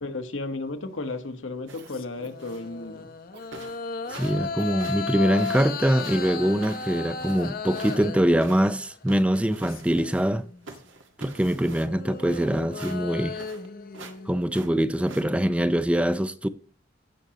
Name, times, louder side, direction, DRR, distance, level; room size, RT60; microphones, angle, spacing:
voice 1, 0.0-3.1, left 3 dB, 90° left, 1.3 m, -34 dB
sound 1, 1.6-9.0 9.4-10.6 11.6-15.5, left 5 dB, 50° left, 0.8 m, -36 dB
Cough, 1.7-2.6 3.3-3.6 4.6-4.8 5.0-5.3, right 2 dB, 60° right, 1.0 m, -48 dB
sound 2, 1.7-2.0 2.4-2.7 3.2-3.3 3.5-4.5 4.7-8.0 8.4-10.4 10.6-13.7 13.9-14.2 14.5-15.2, right 3 dB, 85° right, 1.6 m, -45 dB
voice 2, 4.2-10.5 11.2-13.4 14.3-16.5, right 1 dB, 5° right, 0.4 m, -23 dB
16.0 x 6.3 x 2.9 m
head